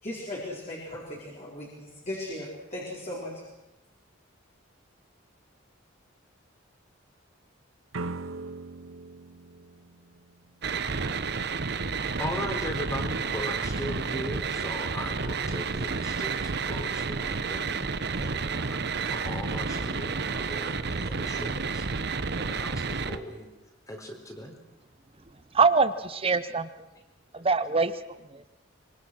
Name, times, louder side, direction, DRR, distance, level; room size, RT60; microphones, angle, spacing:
voice 1, 0.0-3.4, left 1 dB, 35° left, -4 dB, 5.0 m, -37 dB
sound 1, 7.9-10.8, right 3 dB, 85° right, 0.8 m, -40 dB
sound 2, 10.6-23.2, right 4 dB, 55° right, 1.0 m, -31 dB
voice 2, 12.2-21.9 22.3-23.5 23.9-24.6 27.4-27.5, equal, 15° left, 2 dB, 4.0 m, -38 dB
voice 3, 25.5-26.9 27.3-28.0 28.3-28.4, right 4 dB, 30° right, 13 dB, 0.8 m, -24 dB
25.5 x 23.5 x 6.3 m, 0.99 s
head